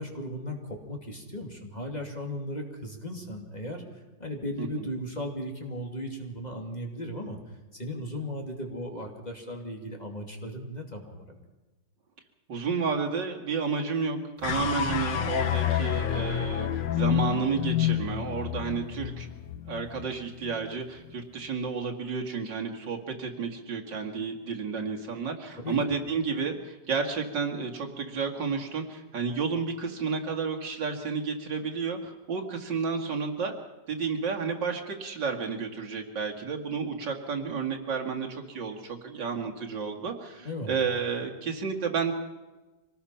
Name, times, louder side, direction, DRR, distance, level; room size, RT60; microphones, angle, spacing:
voice 1, 0.0-3.8 4.2-7.4 7.7-11.4 25.6-25.8 40.4-40.8, equal, 25° left, 1 dB, 2.8 m, -36 dB
voice 2, 12.5-19.3 19.7-33.6 33.9-42.1, right 5 dB, 75° right, 1 dB, 2.8 m, -31 dB
sound 1, 14.4-20.8, left 10 dB, 75° left, 1.7 m, -29 dB
25.0 x 19.0 x 5.8 m, 1.1 s
omnidirectional pair, 1.9 m